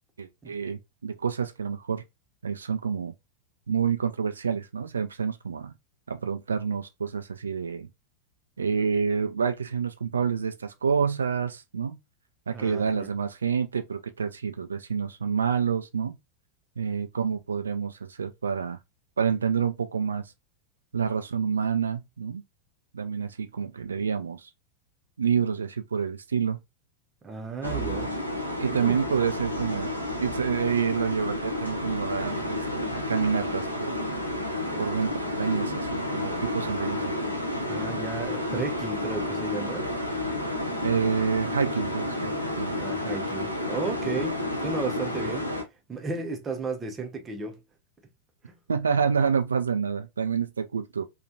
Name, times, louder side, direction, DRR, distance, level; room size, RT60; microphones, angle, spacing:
voice 1, 0.2-2.0 2.4-3.1 3.7-5.7 6.1-7.9 8.6-12.0 12.5-16.2 16.8-18.8 19.2-20.2 20.9-22.4 22.9-24.5 25.2-26.6 28.6-29.9 30.2-33.9 34.8-35.1 35.4-37.2 40.8-42.3 42.6-42.8 48.7-51.0, right 6 dB, 70° right, 0.4 m, -28 dB
voice 2, 12.5-13.1 27.2-28.2 28.8-29.0 37.7-39.9 42.8-45.5 45.9-47.6 48.5-48.6, right 3 dB, 20° right, 0.7 m, -34 dB
sound 1, 27.6-45.6, left 1 dB, 85° left, 0.6 m, -31 dB
3.1 x 2.4 x 2.6 m
figure-of-eight pair, 90°, 0 cm